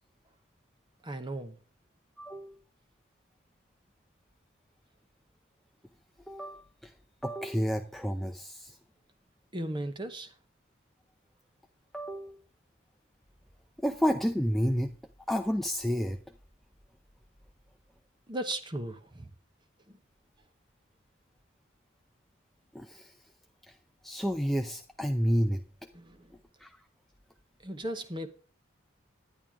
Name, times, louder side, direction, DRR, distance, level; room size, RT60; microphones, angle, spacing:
voice 1, 1.0-1.6 9.5-10.3 18.3-19.3 19.9-20.0 25.9-26.3 27.6-28.3, right 1 dB, 20° right, 0.9 m, -36 dB
voice 2, 2.2-2.6 6.3-6.9 7.2-8.8 11.9-12.4 13.8-14.9 15.3-16.2 22.7-23.1 23.7-23.8 24.0-25.6 26.6-26.7, equal, ahead, 0.5 m, -30 dB
11.0 x 10.5 x 3.6 m
head